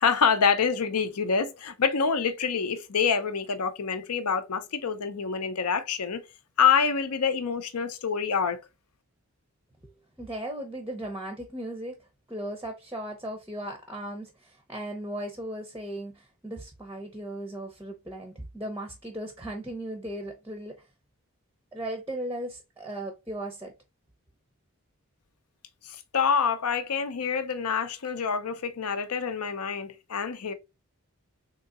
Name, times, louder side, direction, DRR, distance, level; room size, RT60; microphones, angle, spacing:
voice 1, 0.0-6.2 6.6-8.6 26.1-30.5, left 6 dB, 90° left, 0.6 m, -26 dB
voice 2, 10.2-12.0 12.3-20.8 21.7-23.7, right 1 dB, 10° right, 0.5 m, -37 dB
3.7 x 2.8 x 2.4 m
head